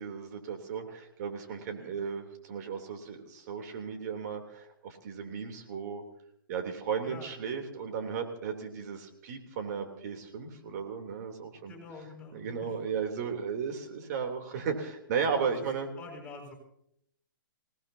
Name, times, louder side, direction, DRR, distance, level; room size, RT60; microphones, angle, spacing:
voice 1, 0.0-6.0 6.5-11.7 12.3-15.9, right 6 dB, 50° right, 4 dB, 3.3 m, -35 dB
voice 2, 11.6-12.7 15.6-15.7 16.0-16.5, left 3 dB, 10° left, -1 dB, 7.5 m, -47 dB
27.0 x 18.5 x 2.8 m, 0.72 s
hypercardioid pair, 125°, 11 cm